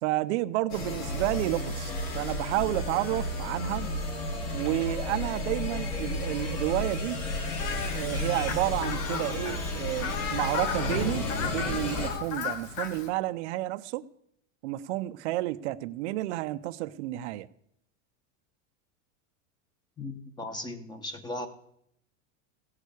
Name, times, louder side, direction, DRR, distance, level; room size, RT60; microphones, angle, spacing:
voice 1, 0.0-3.9 4.5-7.2 7.9-14.1 14.6-17.5, right 16 dB, 60° right, 12 dB, 0.6 m, -31 dB
sound 1, 0.7-12.1, left 2 dB, 50° left, 3.6 m, -32 dB
Fowl, 7.6-13.1, left 6 dB, 80° left, 2.0 m, -35 dB
voice 2, 20.0-21.5, left 1 dB, 10° left, 10 dB, 1.0 m, -37 dB
16.5 x 6.4 x 8.2 m, 0.72 s
supercardioid pair, 155°, 39 cm